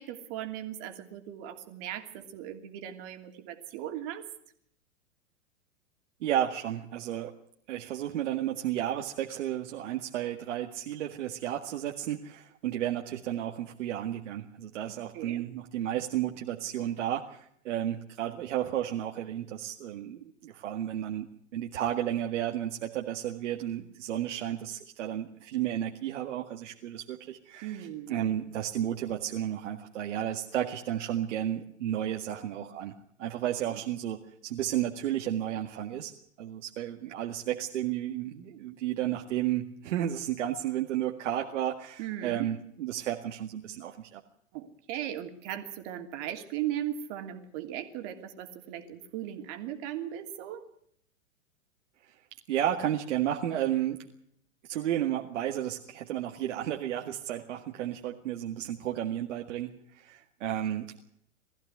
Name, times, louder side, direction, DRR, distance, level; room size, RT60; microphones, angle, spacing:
voice 1, 0.0-4.2 15.1-15.5 27.6-28.2 33.6-33.8 42.0-42.5 44.5-50.6, right 11 dB, 45° right, 5 dB, 3.0 m, -38 dB
voice 2, 6.2-7.3 7.7-21.3 21.5-32.9 33.2-36.1 36.4-44.2 52.5-54.0 54.7-60.9, right 11 dB, 65° right, 2 dB, 2.0 m, -32 dB
20.5 x 15.0 x 9.7 m, 0.69 s
hypercardioid pair, 115°, 40 cm